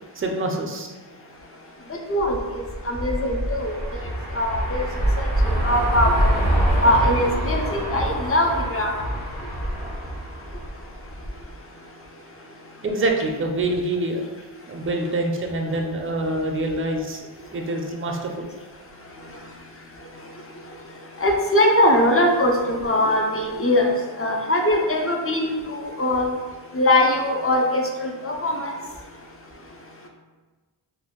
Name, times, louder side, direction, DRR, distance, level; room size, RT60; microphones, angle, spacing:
voice 1, 0.2-0.9 12.8-14.2 14.7-18.5, right 2 dB, 30° right, 2 dB, 0.4 m, -26 dB
voice 2, 2.1-2.4 2.9-3.7 4.3-4.9 5.2-6.3 6.8-8.9 21.2-26.3 26.7-28.7, left 1 dB, 30° left, 1 dB, 0.5 m, -21 dB
sound 1, 2.2-11.4, equal, 85° left, 0.9 m, -25 dB
2.6 x 2.2 x 3.6 m, 1.3 s
wide cardioid pair, 65°, 47 cm